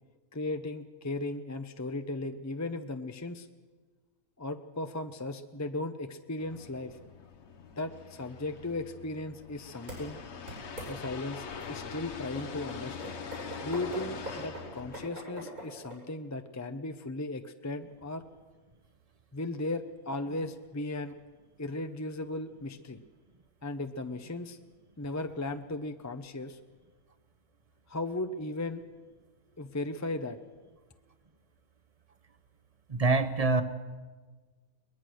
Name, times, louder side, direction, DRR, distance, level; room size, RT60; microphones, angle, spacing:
voice 1, 0.3-3.5 4.4-7.0 7.8-10.2 10.9-13.2 13.6-18.2 19.3-21.1 21.6-23.0 23.6-24.6 25.0-26.6 27.9-28.8 29.6-30.4, left 2 dB, 20° left, 8 dB, 0.5 m, -36 dB
sound 1, 6.4-15.1, left 6 dB, 55° left, 1.2 m, -43 dB
sound 2, 9.9-10.0 10.5-10.9 11.6-11.7 12.4-16.0, equal, 90° right, 8.6 m, -41 dB
voice 2, 32.9-33.6, right 3 dB, 30° right, 10 dB, 0.9 m, -25 dB
22.5 x 20.0 x 6.3 m, 1.4 s
omnidirectional pair, 1.5 m